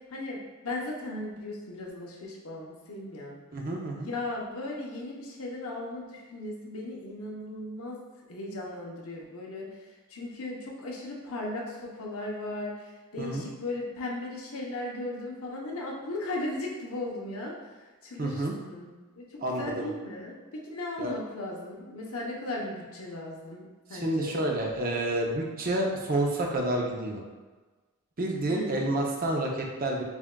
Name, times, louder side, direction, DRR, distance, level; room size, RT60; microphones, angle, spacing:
voice 1, 0.1-3.4 4.0-8.0 8.3-17.6 18.0-18.9 19.2-24.4 28.5-28.8, left 2 dB, 80° left, -2 dB, 0.8 m, -37 dB
voice 2, 3.5-4.1 13.2-13.5 18.2-18.5 19.4-19.9 21.0-21.1 23.9-27.2 28.2-30.0, right 1 dB, 40° right, 0 dB, 0.6 m, -29 dB
7.0 x 2.4 x 2.2 m, 1.3 s
head